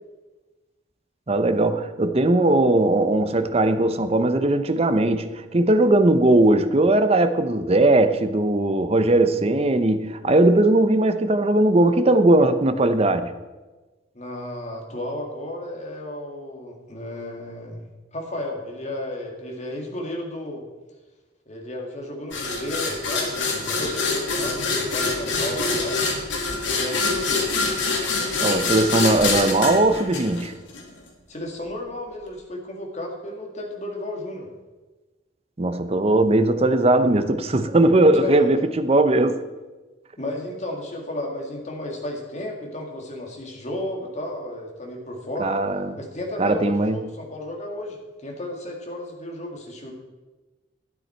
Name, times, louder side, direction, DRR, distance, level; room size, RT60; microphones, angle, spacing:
voice 1, 1.3-13.3 28.4-30.5 35.6-39.4 45.4-46.0 46.4-47.0, right 2 dB, 35° right, 0.7 m, -19 dB
voice 2, 14.1-17.8 18.1-20.6 21.5-23.3 23.7-26.0 26.6-27.5 31.3-34.5 38.1-38.7 40.2-45.5 46.0-49.9, left 1 dB, 40° left, 2.1 m, -33 dB
sound 1, 22.3-30.8, left 3 dB, 90° left, 2.1 m, -25 dB
11.5 x 9.6 x 4.4 m
head